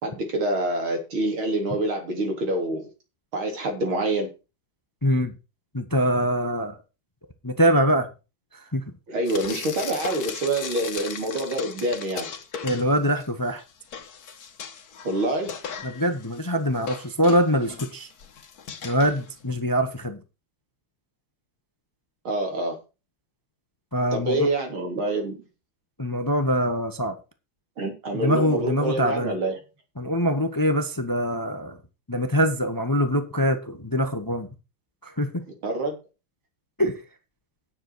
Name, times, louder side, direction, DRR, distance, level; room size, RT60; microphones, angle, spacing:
voice 1, 0.0-2.9 3.3-4.3 9.1-12.3 15.0-15.5 22.2-22.8 24.1-25.4 27.8-29.5 35.6-36.0, right 2 dB, 85° right, 4.1 m, -26 dB
voice 2, 5.0-5.3 5.7-6.8 7.4-8.1 8.5-8.8 12.6-13.6 15.8-18.1 18.8-20.2 23.9-24.5 26.0-27.2 28.1-29.3 30.0-31.8 32.1-34.5 35.0-35.5 36.8-37.0, equal, 15° left, 0.9 m, -24 dB
Frying (food), 9.2-13.3 13.6-19.6, left 6 dB, 50° left, 1.6 m, -37 dB
10.0 x 7.4 x 6.2 m
omnidirectional pair, 2.2 m